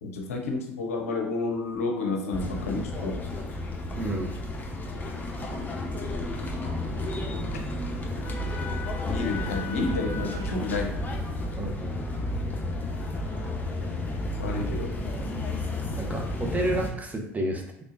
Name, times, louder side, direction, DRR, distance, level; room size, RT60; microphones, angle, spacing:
voice 1, 0.0-3.1 9.1-10.9 14.4-14.9, left 3 dB, 85° left, 1 dB, 0.6 m, -30 dB
sound 1, 2.3-16.9, left 1 dB, 25° left, 0.9 m, -32 dB
voice 2, 3.9-4.4 11.6-12.1 16.0-17.8, right 2 dB, 20° right, 1 dB, 0.8 m, -31 dB
3.7 x 3.3 x 2.5 m, 0.77 s
hypercardioid pair, 65°, 7 cm